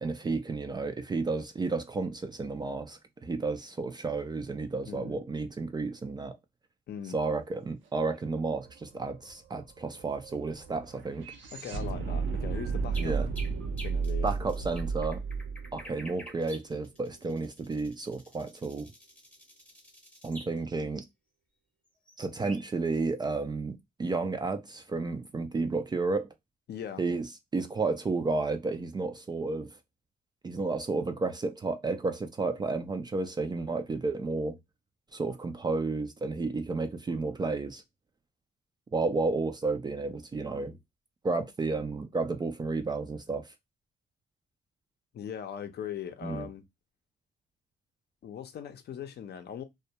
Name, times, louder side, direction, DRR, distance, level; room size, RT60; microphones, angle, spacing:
voice 1, 0.0-6.4 7.1-11.3 13.0-13.3 14.2-15.2 15.7-18.9 20.2-21.0 22.2-26.3 27.0-29.8 30.4-34.6 35.1-37.8 38.9-40.8 41.2-43.5 46.2-46.5, right 3 dB, 20° right, 0.3 m, -32 dB
voice 2, 4.8-5.2 6.9-7.2 11.5-13.1 13.8-14.3 26.7-27.0 45.1-46.6 48.2-49.6, left 8 dB, 55° left, 0.5 m, -40 dB
sound 1, 8.3-8.4 8.6-16.9, right 5 dB, 70° right, 0.6 m, -34 dB
sound 2, 12.5-20.5 22.1-22.2 22.4-22.6, right 1 dB, 5° left, 0.7 m, -49 dB
2.2 x 2.1 x 2.7 m
cardioid pair, 90°, 20 cm